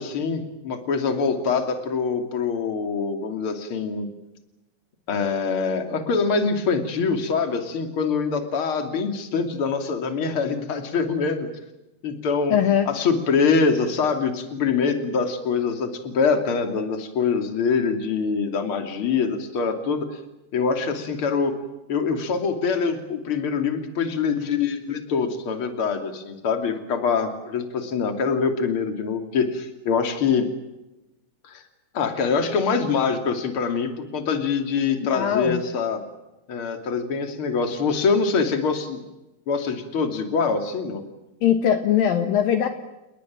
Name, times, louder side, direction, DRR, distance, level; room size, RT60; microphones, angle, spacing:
voice 1, 0.0-4.1 5.1-11.5 12.0-12.6 12.9-20.1 20.5-21.5 21.9-30.5 31.4-31.6 31.9-36.0 36.5-39.0 39.5-41.0, left 5 dB, 35° left, 7 dB, 3.2 m, -24 dB
voice 2, 12.5-12.9 35.1-35.6 41.4-42.7, left 9 dB, 70° left, 7 dB, 3.0 m, -20 dB
30.0 x 20.5 x 7.6 m, 0.97 s
omnidirectional pair, 4.5 m